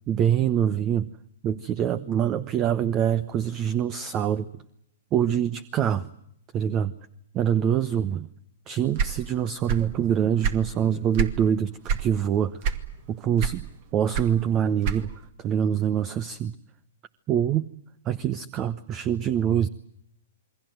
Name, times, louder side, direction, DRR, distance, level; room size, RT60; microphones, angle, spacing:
voice 1, 0.1-1.1 1.4-4.5 5.1-6.1 6.5-6.9 7.3-8.3 8.7-12.6 13.1-13.7 13.9-15.1 15.4-16.5 17.3-17.7 18.0-19.7, right 9 dB, 30° right, 18 dB, 1.0 m, -25 dB
sound 1, 8.9-10.0 10.3-11.4 11.9-12.1 12.6-13.1 13.4-15.3, right 6 dB, 45° right, 2.2 m, -27 dB
28.0 x 22.5 x 7.9 m, 0.73 s
hypercardioid pair, 120°, 0 cm